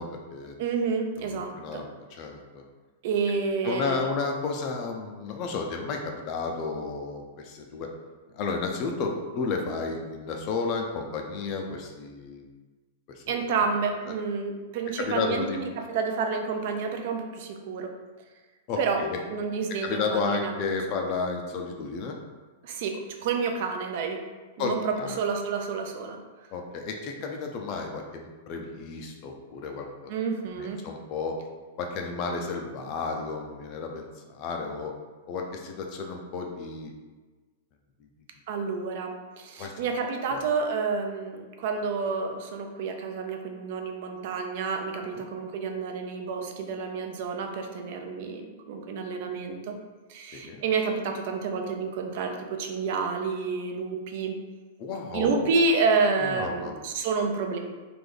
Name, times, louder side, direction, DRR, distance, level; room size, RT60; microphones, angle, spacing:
voice 1, 0.0-0.5 1.2-1.8 2.1-2.6 3.6-7.9 8.3-12.5 13.2-13.4 15.0-15.6 18.7-19.2 19.8-22.2 24.6-25.2 26.5-30.1 30.5-31.4 31.8-34.9 35.3-36.9 39.6-39.7 40.3-40.4 45.1-45.3 50.3-50.6 54.8-55.5 56.2-56.7, left 4 dB, 35° left, 2 dB, 0.5 m, -32 dB
voice 2, 0.6-1.8 3.0-4.0 13.3-17.9 18.8-19.0 19.3-20.6 22.6-24.2 24.6-26.2 30.1-30.8 38.5-49.7 50.1-54.3 55.1-57.6, right 4 dB, 50° right, 4 dB, 0.4 m, -29 dB
3.3 x 2.5 x 3.8 m, 1.3 s
supercardioid pair, 165°, 0 cm